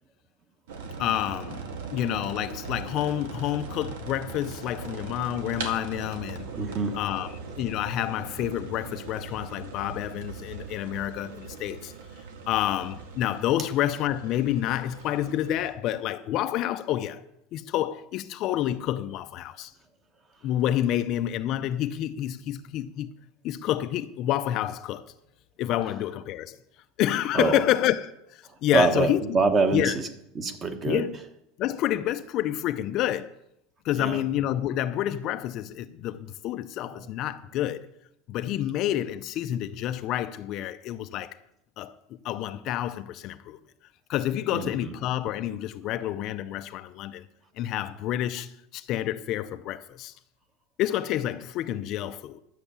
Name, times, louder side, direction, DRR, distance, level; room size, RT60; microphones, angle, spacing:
sound 1, 0.7-15.7, right 4 dB, 85° right, 2.0 m, -40 dB
voice 1, 1.0-1.6 1.9-6.5 6.9-11.9 12.5-17.2 17.5-19.7 20.4-23.1 23.4-25.0 25.6-26.6 27.0-29.2 29.7-30.0 30.9-31.2 31.6-33.3 33.8-37.9 38.3-41.4 41.8-42.0 42.2-43.6 44.1-47.3 47.6-50.1 50.8-52.4, left 12 dB, 40° left, 0.5 m, -28 dB
voice 2, 6.5-7.0 27.3-27.6 28.7-30.1 30.3-31.0 33.9-34.2 36.9-37.0 44.5-44.9, right 3 dB, 25° right, 1.2 m, -25 dB
12.0 x 8.1 x 6.9 m
supercardioid pair, 160°, 0 cm